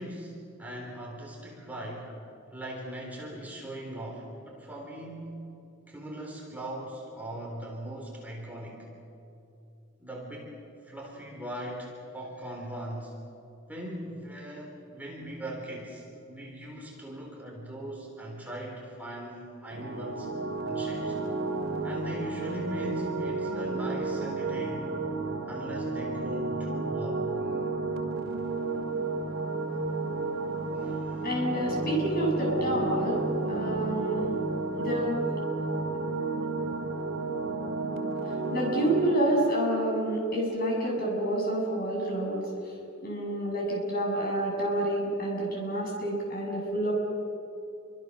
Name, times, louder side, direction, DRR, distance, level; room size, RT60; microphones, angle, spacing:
voice 1, 0.0-2.2 2.5-5.4 5.9-8.9 10.0-10.6 10.8-13.1 13.7-20.3 20.7-21.2 21.8-24.9 25.5-27.5 30.7-31.3, right 1 dB, 10° right, -2 dB, 3.8 m, -40 dB
sound 1, 19.7-39.1, right 3 dB, 85° right, 2.2 m, -32 dB
voice 2, 31.2-34.4 34.7-35.2 38.2-42.5 43.0-46.9, right 1 dB, 45° left, -1 dB, 7.4 m, -28 dB
28.5 x 24.0 x 6.6 m, 2.8 s
head